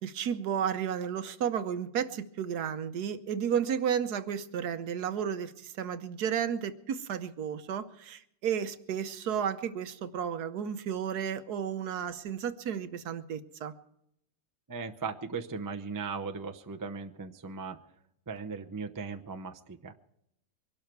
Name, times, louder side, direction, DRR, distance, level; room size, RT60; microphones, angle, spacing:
voice 1, 0.0-13.7, right 8 dB, 65° right, 11 dB, 1.3 m, -33 dB
voice 2, 14.7-17.8 18.3-19.9, right 4 dB, 30° right, 5 dB, 0.3 m, -38 dB
23.5 x 12.0 x 4.6 m, 0.77 s
omnidirectional pair, 1.9 m